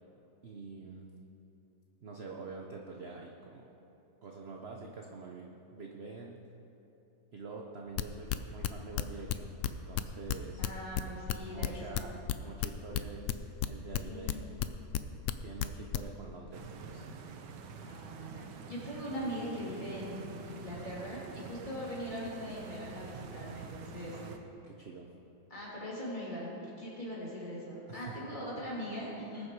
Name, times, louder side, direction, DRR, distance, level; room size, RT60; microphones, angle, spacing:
voice 1, 0.4-1.1 2.0-3.7 4.2-6.4 7.3-10.6 11.4-13.4 13.6-14.4 15.4-17.0 24.1-24.4 24.6-25.1 27.9-28.3, right 4 dB, 50° right, 0 dB, 0.9 m, -46 dB
sound 1, 8.0-13.7 13.9-15.3 15.6-16.0, left 11 dB, 80° left, 0.7 m, -32 dB
voice 2, 10.6-12.2 14.0-14.5 17.8-24.2 25.5-29.5, equal, 25° left, -7 dB, 3.3 m, -41 dB
Stream, 16.5-24.4, right 5 dB, 90° right, 1.4 m, -47 dB
19.5 x 6.6 x 4.7 m, 2.9 s
omnidirectional pair, 1.8 m